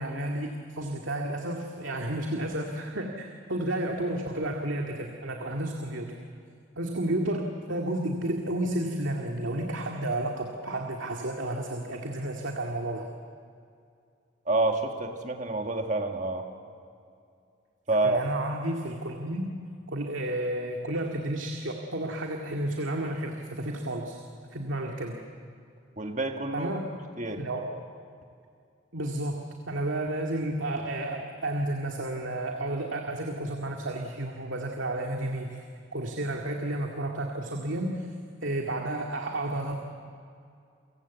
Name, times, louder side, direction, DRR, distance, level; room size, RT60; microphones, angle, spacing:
voice 1, 0.0-6.1 6.8-13.1 18.0-19.5 19.9-24.2 24.5-25.2 26.5-26.9 27.4-27.6 28.9-29.4 29.7-35.6 35.9-38.1 38.4-39.8, right 1 dB, 75° right, 1 dB, 2.2 m, -31 dB
voice 2, 14.5-16.5 17.9-18.2 26.0-26.7 27.2-27.4, right 2 dB, 40° right, 4 dB, 1.9 m, -28 dB
30.0 x 24.0 x 8.3 m, 2.4 s
head